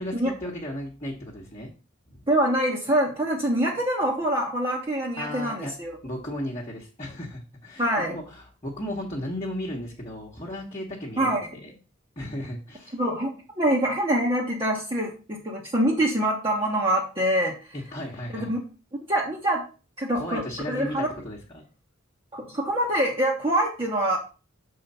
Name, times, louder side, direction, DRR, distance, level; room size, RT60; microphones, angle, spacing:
voice 1, 0.0-1.7 2.1-2.2 5.2-5.7 6.0-11.7 12.2-13.0 17.7-18.5 20.1-21.6, left 1 dB, 30° left, -4 dB, 1.2 m, -35 dB
voice 2, 2.3-6.0 7.8-8.2 11.2-11.4 12.9-13.3 13.6-17.5 18.3-18.6 19.1-19.7 20.0-20.4 20.7-21.1 22.3-24.2, right 1 dB, 25° right, -3 dB, 1.2 m, -25 dB
6.6 x 3.8 x 5.5 m, 0.35 s
head